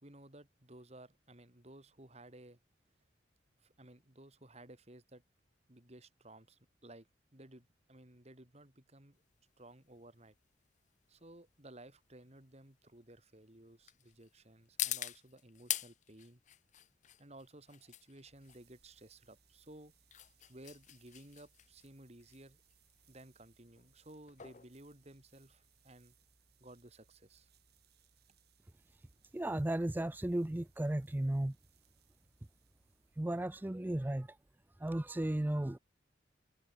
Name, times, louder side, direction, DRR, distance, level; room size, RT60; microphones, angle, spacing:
voice 1, 0.0-2.6 3.6-5.2 5.7-7.1 7.3-9.2 9.6-10.3 11.1-16.4 17.2-19.9 20.5-22.6 23.1-26.2 26.6-27.5, right 1 dB, 35° right, 3.1 m, -56 dB
sound 1, 9.2-25.8, left 13 dB, 40° left, 0.6 m, -46 dB
sound 2, 18.1-33.9, right 6 dB, 55° right, 5.6 m, -71 dB
voice 2, 29.3-31.5 33.2-34.3 34.8-35.8, right 1 dB, 10° right, 0.4 m, -34 dB
head